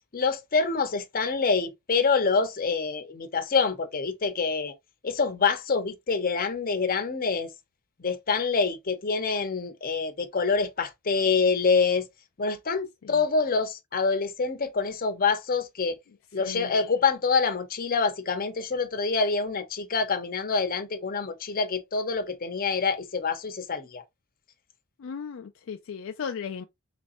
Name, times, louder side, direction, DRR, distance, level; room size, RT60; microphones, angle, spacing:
voice 1, 0.1-4.7 5.0-7.5 8.0-12.1 12.4-16.0 16.3-24.0, left 4 dB, 45° left, 0.8 m, -26 dB
voice 2, 16.4-16.8 25.0-26.7, left 6 dB, 65° left, 0.4 m, -36 dB
4.2 x 3.2 x 2.5 m
head